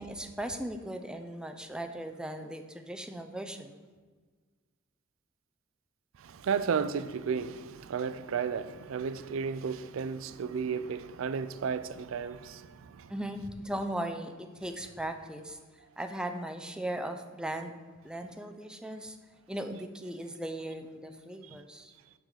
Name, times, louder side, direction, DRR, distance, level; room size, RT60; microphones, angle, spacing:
voice 1, 0.0-3.8 13.1-15.6 16.0-17.7 18.0-19.2 19.5-21.9, right 1 dB, 5° right, 0.4 m, -38 dB
voice 2, 6.2-13.1 21.4-21.6, right 6 dB, 75° right, 0.4 m, -33 dB
6.4 x 3.8 x 6.3 m
head